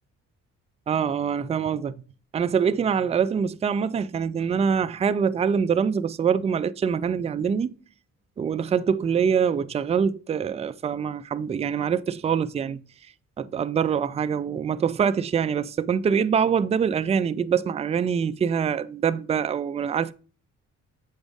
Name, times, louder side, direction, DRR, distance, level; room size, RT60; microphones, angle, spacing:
voice 1, 0.9-2.0 2.3-7.7 8.4-12.8 13.4-20.1, right 7 dB, 20° right, 0.3 m, -24 dB
7.2 x 5.2 x 3.5 m
cardioid pair, 90°, 30 cm